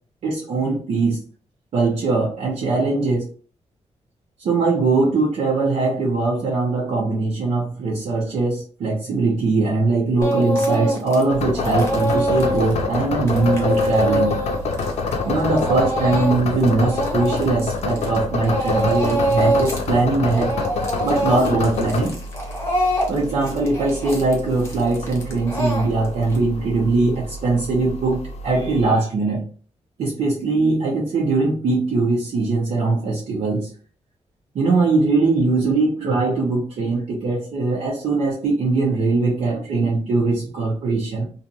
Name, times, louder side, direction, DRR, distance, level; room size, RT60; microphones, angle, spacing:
voice 1, 0.2-1.2 1.7-3.3 4.4-14.4 15.2-20.5 21.0-22.2 23.1-29.5 30.0-33.7 34.5-41.3, right 3 dB, 70° right, -4 dB, 0.8 m, -21 dB
Speech / Crying sobbing, 10.2-11.2 11.5-18.2 18.4-19.9 20.1-26.4, equal, 20° left, 0.8 m, -24 dB
sound 1, 11.3-28.8, left 3 dB, 70° left, 0.6 m, -28 dB
2.6 x 2.4 x 2.7 m, 0.40 s
wide cardioid pair, 150°, 12 cm